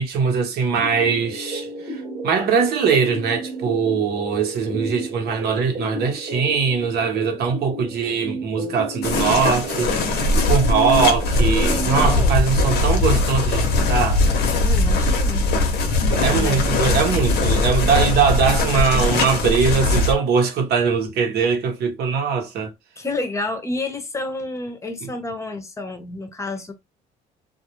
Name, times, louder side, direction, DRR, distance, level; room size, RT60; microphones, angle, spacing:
voice 1, 0.0-14.2 16.2-22.7 25.0-25.1, right 6 dB, 70° right, 0.9 m, -21 dB
sound 1, 0.8-12.1, right 1 dB, 30° right, 0.9 m, -32 dB
sound 2, 9.0-20.1, left 2 dB, 80° left, 0.7 m, -20 dB
voice 2, 11.6-12.4 14.6-15.5 16.4-16.6 23.0-26.7, left 2 dB, 15° left, 0.6 m, -30 dB
2.3 x 2.0 x 2.9 m
cardioid pair, 110°, 17 cm